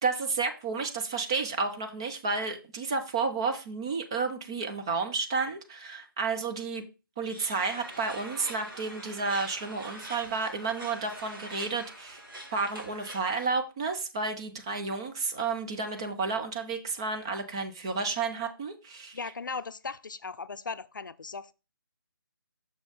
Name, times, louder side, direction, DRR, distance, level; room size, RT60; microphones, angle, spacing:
voice 1, 0.0-6.8 7.2-12.2 12.5-19.2, right 4 dB, 15° right, 0.3 m, -31 dB
sound 1, 7.3-13.5, right 1 dB, 70° right, 2.5 m, -44 dB
voice 2, 19.1-21.5, left 4 dB, 60° left, 0.5 m, -38 dB
6.2 x 5.6 x 3.9 m
figure-of-eight pair, 145°, 12 cm